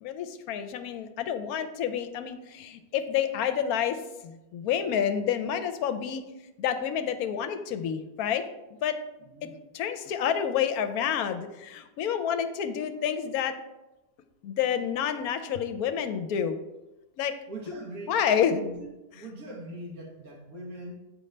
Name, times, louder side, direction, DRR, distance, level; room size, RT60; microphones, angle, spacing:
voice 1, 0.0-4.0 4.2-6.2 6.6-8.4 8.8-9.0 9.4-9.5 9.7-13.5 14.4-16.6 17.2-17.3 18.1-18.6, left 8 dB, 75° left, 9 dB, 1.0 m, -29 dB
voice 2, 9.2-9.5 17.5-18.2 18.6-18.9 19.1-20.9, right 1 dB, 65° right, 0 dB, 1.6 m, -41 dB
7.6 x 5.1 x 3.2 m, 1.0 s
omnidirectional pair, 1.6 m